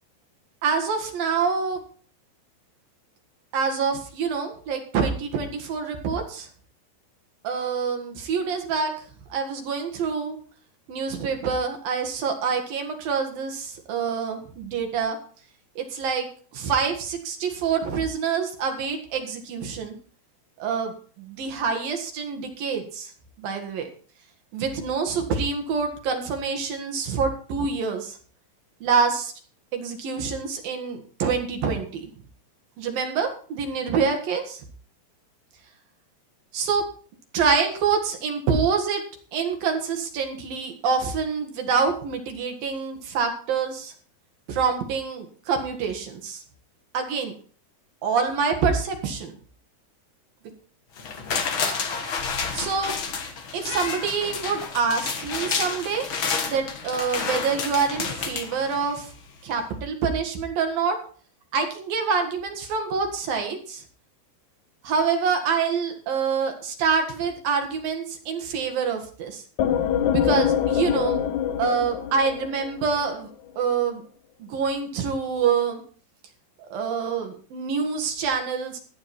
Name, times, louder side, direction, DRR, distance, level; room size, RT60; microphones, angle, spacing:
voice 1, 0.6-1.8 3.5-6.5 7.4-8.9 9.3-10.4 10.9-15.2 15.8-16.3 16.5-20.0 20.6-23.1 23.4-23.9 24.5-28.2 28.8-29.3 29.7-32.1 32.8-34.6 36.5-36.8 37.3-39.0 39.3-43.9 44.5-46.4 46.9-47.3 48.0-49.4 52.5-52.9 53.5-56.1 56.4-59.1 59.4-61.0 61.5-63.8 64.8-69.4 70.1-71.2 71.6-73.3 73.6-74.0 74.4-75.8 76.7-78.8, right 5 dB, 65° right, 4 dB, 3.4 m, -26 dB
sound 1, 51.0-59.1 59.5-59.6, left 5 dB, 65° left, 1.3 m, -30 dB
sound 2, 69.6-73.2, left 9 dB, 85° left, 1.6 m, -24 dB
15.0 x 9.6 x 4.3 m, 0.43 s
omnidirectional pair, 4.8 m